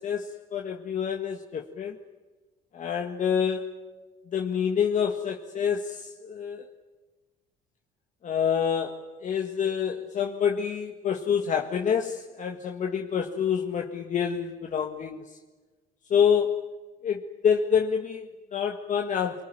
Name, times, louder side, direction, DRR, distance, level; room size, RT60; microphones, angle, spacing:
voice 1, 0.0-2.0 2.7-3.8 4.3-6.7 8.2-15.2 16.1-16.6 17.0-19.4, left 7 dB, 45° left, 2 dB, 1.8 m, -27 dB
24.0 x 23.5 x 9.2 m, 1.3 s
cardioid pair, 110°, 17 cm